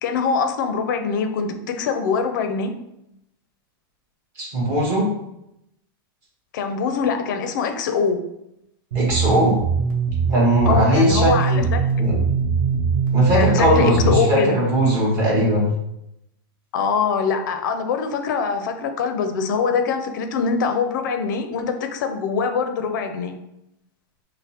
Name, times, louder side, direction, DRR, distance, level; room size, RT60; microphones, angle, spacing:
voice 1, 0.0-2.7 6.5-8.2 10.7-11.9 13.3-14.6 16.7-23.4, left 5 dB, 55° left, 7 dB, 0.5 m, -23 dB
voice 2, 4.4-5.1 8.9-9.6 10.3-11.7 12.0-12.2 13.1-15.7, equal, 25° right, -5 dB, 1.2 m, -19 dB
sound 1, 8.9-14.2, right 5 dB, 55° right, 0.9 m, -21 dB
5.3 x 2.1 x 2.8 m, 0.82 s
supercardioid pair, 175°, 12 cm